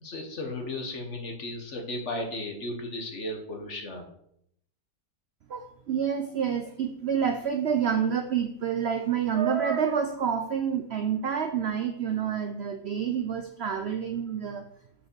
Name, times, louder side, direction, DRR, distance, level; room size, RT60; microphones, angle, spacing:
voice 1, 0.0-4.0, left 1 dB, 45° left, 4 dB, 1.6 m, -35 dB
voice 2, 5.5-14.7, right 7 dB, 70° right, 8 dB, 0.6 m, -28 dB
6.6 x 5.2 x 6.1 m, 0.72 s
omnidirectional pair, 1.8 m